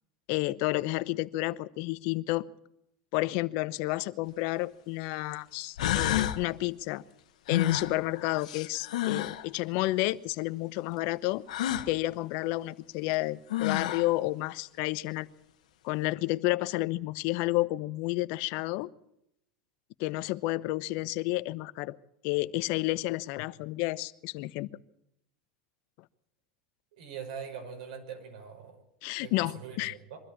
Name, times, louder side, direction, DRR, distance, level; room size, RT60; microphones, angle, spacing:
voice 1, 0.3-2.4 3.1-7.0 7.5-11.4 11.9-15.3 15.8-18.9 20.0-22.0 22.2-24.7 29.0-29.9, left 19 dB, 60° left, 0.9 m, -31 dB
sound 1, 4.3-4.4 5.3-5.4 5.8-6.4 7.5-9.4 11.5-11.9 13.1-13.2 13.5-14.1, left 12 dB, 85° left, 1.3 m, -30 dB
voice 2, 26.9-28.8 29.2-30.2, right 7 dB, 75° right, 5.5 m, -42 dB
23.0 x 13.5 x 8.4 m
supercardioid pair, 110°, 4 cm